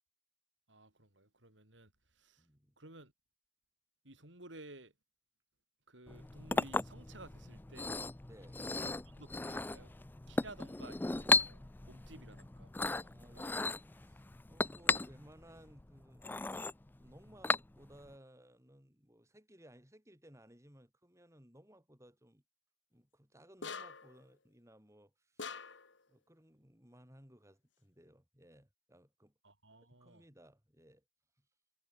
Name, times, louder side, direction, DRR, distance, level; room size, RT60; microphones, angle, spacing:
voice 1, 0.7-1.9 2.2-2.4 2.8-3.1 4.1-4.9 5.9-7.9 8.8-9.9 10.3-12.7 13.1-13.4 29.4-30.2, right 2 dB, 85° right, 6.9 m, -55 dB
voice 2, 2.4-2.7 8.3-8.6 13.0-16.3 17.0-22.4 22.9-25.7 26.1-29.3 30.0-31.0 31.4-31.5, equal, 15° right, 7.5 m, -60 dB
Chink clink, 6.1-18.1, left 3 dB, 10° left, 0.3 m, -36 dB
sound 1, 23.6-24.2 25.4-26.0, left 5 dB, 85° left, 2.0 m, -44 dB
head